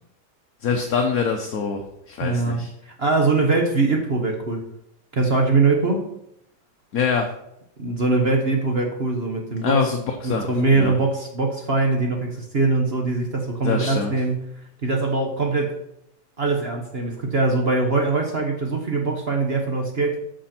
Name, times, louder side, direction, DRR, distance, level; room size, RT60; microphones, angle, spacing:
voice 1, 0.6-2.7 6.9-7.2 9.6-10.4 10.7-11.0 13.6-14.1, left 5 dB, 55° left, 3 dB, 1.1 m, -24 dB
voice 2, 2.2-4.6 5.1-6.1 7.8-9.9 10.2-14.5 14.8-15.8 16.4-20.2, right 3 dB, 40° right, 2 dB, 1.1 m, -22 dB
13.5 x 5.2 x 4.4 m, 0.79 s
omnidirectional pair, 2.2 m